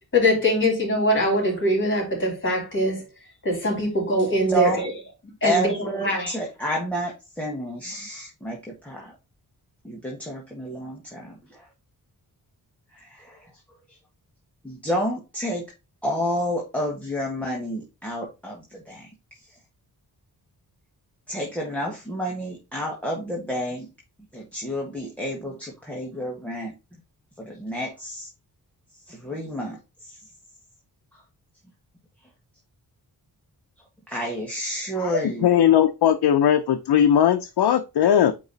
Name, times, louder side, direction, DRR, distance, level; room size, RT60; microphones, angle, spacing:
voice 1, 0.1-3.0 3.4-4.9 5.4-5.8 6.0-6.3, equal, 30° left, 3.6 m, -22 dB
voice 2, 4.5-4.9 5.4-9.1 9.8-11.7 12.9-13.6 13.9-14.0 14.6-15.7 16.0-19.6 21.3-23.9 24.3-26.7 27.4-28.3 29.0-30.3 31.1-31.2 34.1-35.5, equal, 5° left, 1.4 m, -30 dB
voice 3, 35.0-38.3, left 9 dB, 80° left, 0.7 m, -19 dB
9.0 x 3.0 x 3.9 m
wide cardioid pair, 140°, 39 cm